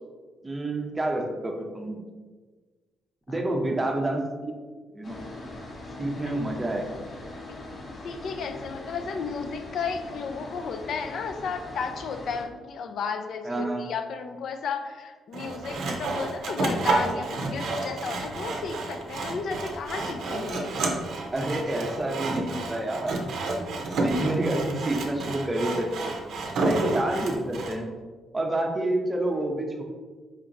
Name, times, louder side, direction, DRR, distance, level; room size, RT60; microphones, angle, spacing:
voice 1, 0.4-2.0 3.3-4.5 4.9-5.2 6.0-6.9 13.4-13.8 21.3-23.2 23.5-26.1 26.6-27.9 28.3-29.8, right 1 dB, 20° right, 1 dB, 0.6 m, -28 dB
sound 1, 5.0-12.5, left 2 dB, 40° left, 0.7 m, -41 dB
voice 2, 8.0-20.7, left 5 dB, 65° left, 7 dB, 0.4 m, -33 dB
Sawing, 15.3-27.8, right 2 dB, 70° right, 0.5 m, -30 dB
4.3 x 2.9 x 2.5 m, 1.4 s
cardioid pair, 90°, 0 cm